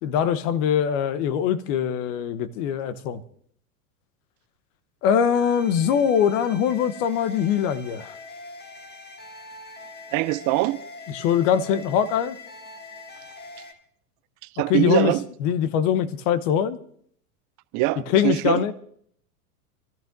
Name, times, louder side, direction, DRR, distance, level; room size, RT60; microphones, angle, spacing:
voice 1, 0.0-3.2 5.0-8.1 11.1-12.4 14.7-15.1 15.4-16.8 18.1-18.7, left 8 dB, 55° left, 1.1 m, -22 dB
sound 1, 5.3-13.7, left 3 dB, 20° left, 1.7 m, -43 dB
voice 2, 10.1-10.8 14.5-15.2 17.7-18.6, right 18 dB, 40° right, 0.5 m, -23 dB
27.0 x 13.5 x 2.6 m
hypercardioid pair, 100°, 47 cm